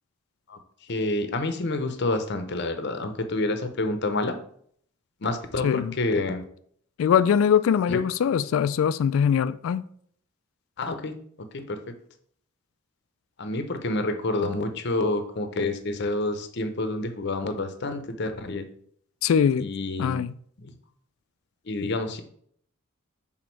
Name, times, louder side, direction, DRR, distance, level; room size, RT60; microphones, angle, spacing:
voice 1, 0.9-4.4 5.2-6.4 7.9-8.0 10.8-11.1 11.5-11.8 13.4-18.7 19.6-20.2 20.6-20.7 21.7-22.2, left 2 dB, 55° left, 0.7 m, -28 dB
voice 2, 5.6-5.9 7.0-9.8 19.2-19.7 20.0-20.3, left 7 dB, 75° left, 0.3 m, -22 dB
6.2 x 3.7 x 4.5 m
head